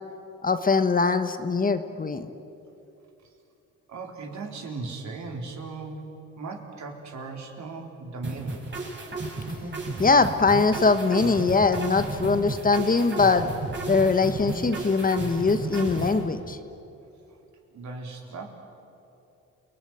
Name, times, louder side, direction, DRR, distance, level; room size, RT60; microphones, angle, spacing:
voice 1, 0.4-2.3 10.0-13.5 13.9-16.6, left 4 dB, 30° left, 9 dB, 1.3 m, -22 dB
voice 2, 3.9-6.0 6.4-8.7 17.7-18.6, right 3 dB, 65° right, 2 dB, 4.0 m, -37 dB
sound 1, 8.2-16.2, right 3 dB, 40° right, 5.7 m, -33 dB
29.0 x 19.5 x 9.3 m, 2.8 s
cardioid pair, 90°, 30 cm